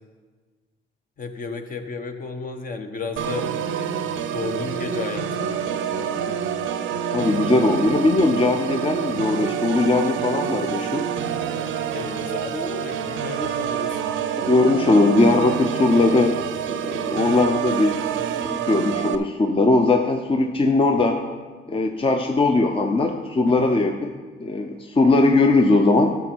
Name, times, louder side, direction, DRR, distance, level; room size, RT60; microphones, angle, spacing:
voice 1, 1.2-3.5 4.3-6.3 11.9-13.9 23.6-23.8, left 4 dB, 45° left, 6 dB, 1.0 m, -33 dB
Organ, 3.2-19.2, right 8 dB, 75° right, 0.6 m, -27 dB
voice 2, 7.1-11.1 14.5-16.3 16.7-18.0 18.4-21.2 21.7-24.0 24.4-26.2, left 2 dB, 25° left, 4 dB, 0.7 m, -19 dB
11.5 x 6.8 x 4.6 m, 1.4 s
cardioid pair, 90°, 20 cm